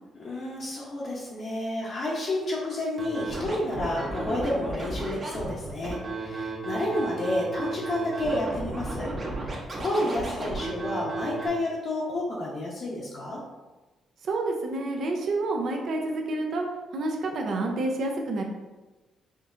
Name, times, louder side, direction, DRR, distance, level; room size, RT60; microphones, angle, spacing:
voice 1, 0.2-9.1 9.4-13.4, left 1 dB, 55° left, -6 dB, 0.8 m, -30 dB
Scratching (performance technique), 3.0-11.5, right 2 dB, 40° right, 1.0 m, -34 dB
voice 2, 14.2-16.7 16.9-18.4, right 2 dB, 70° right, 1 dB, 0.6 m, -28 dB
5.2 x 2.7 x 2.5 m, 1.2 s
cardioid pair, 90°, 0 cm